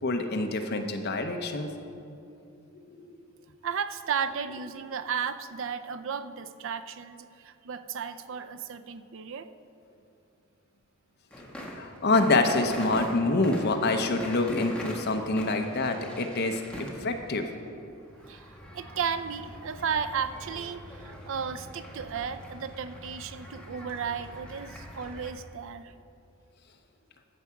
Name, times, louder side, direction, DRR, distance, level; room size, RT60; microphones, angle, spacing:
voice 1, 0.0-1.7 2.7-3.1 11.7-16.6 17.0-17.5, left 2 dB, 50° left, 5 dB, 0.8 m, -26 dB
voice 2, 3.6-9.5 18.3-25.9, right 7 dB, 65° right, 11 dB, 0.5 m, -34 dB
sound 1, 11.3-25.3, equal, 5° left, 1.2 m, -43 dB
13.0 x 4.9 x 7.1 m, 2.6 s
head